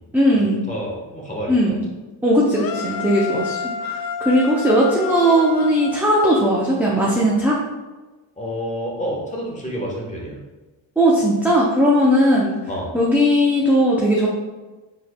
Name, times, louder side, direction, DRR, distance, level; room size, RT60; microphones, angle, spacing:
voice 1, 0.1-0.6 1.5-1.7 2.2-7.6 11.0-12.5 12.9-14.3, equal, 5° right, -5 dB, 0.6 m, -18 dB
voice 2, 0.7-1.8 8.4-10.4 12.7-12.9, equal, 15° left, -3 dB, 1.2 m, -29 dB
sound 1, 2.6-6.7, left 6 dB, 50° left, 0.5 m, -30 dB
4.5 x 3.6 x 2.3 m, 1.2 s
cardioid pair, 80°, 45 cm